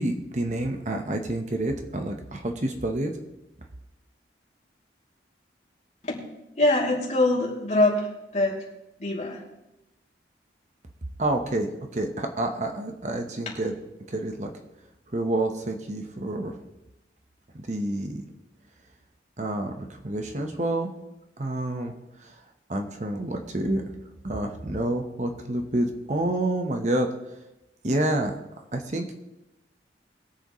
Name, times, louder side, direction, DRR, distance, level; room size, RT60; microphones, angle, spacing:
voice 1, 0.0-3.1 11.2-13.7 14.1-14.5 15.1-16.5 17.5-18.2 19.4-20.9 21.4-21.9 22.7-23.8 24.2-27.1 27.8-28.4 28.7-29.0, right 1 dB, 40° right, 4 dB, 1.1 m, -28 dB
voice 2, 6.6-8.1 8.3-8.7 9.0-9.4, left 2 dB, 40° left, -3 dB, 2.9 m, -23 dB
21.5 x 8.0 x 3.1 m, 0.95 s
head